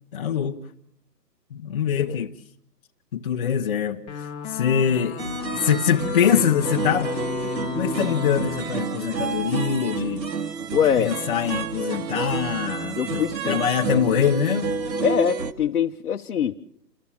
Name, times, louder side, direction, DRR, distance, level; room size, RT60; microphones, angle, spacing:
voice 1, 0.1-0.6 1.5-2.3 3.1-5.2 5.5-7.1 7.6-10.3 11.0-14.7, left 8 dB, 30° left, 1.0 m, -24 dB
sound 1, 4.1-10.2, left 9 dB, 10° left, 1.5 m, -34 dB
sound 2, 5.2-15.5, right 5 dB, 90° right, 2.3 m, -29 dB
voice 2, 10.7-11.1 13.0-13.6 15.0-16.6, left 8 dB, 60° left, 1.2 m, -23 dB
29.0 x 15.0 x 7.1 m
hypercardioid pair, 160°, 50 cm